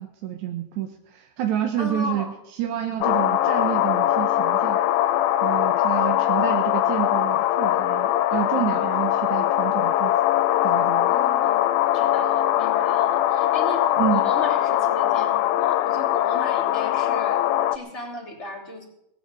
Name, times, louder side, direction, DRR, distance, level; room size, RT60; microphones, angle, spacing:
voice 1, 0.0-4.8 5.4-10.1 10.6-11.1 14.0-14.2, right 11 dB, 70° right, 4 dB, 2.0 m, -29 dB
voice 2, 1.8-2.3 11.1-17.4 17.7-18.9, left 2 dB, 20° left, 1 dB, 2.8 m, -35 dB
sound 1, 3.0-17.8, left 12 dB, 85° left, 2.4 m, -21 dB
18.5 x 8.6 x 7.3 m, 0.83 s
omnidirectional pair, 4.1 m